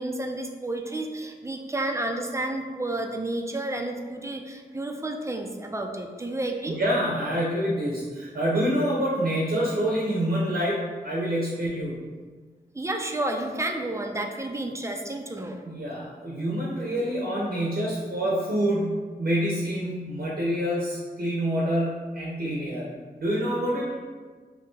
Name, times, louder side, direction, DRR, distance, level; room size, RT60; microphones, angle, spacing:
voice 1, 0.0-6.8 12.7-15.6, right 1 dB, 15° right, 3 dB, 0.4 m, -31 dB
voice 2, 6.8-12.0 15.6-22.9 23.2-24.0, equal, 60° right, -5 dB, 0.6 m, -27 dB
2.7 x 2.7 x 3.6 m, 1.5 s
wide cardioid pair, 60°, 17 cm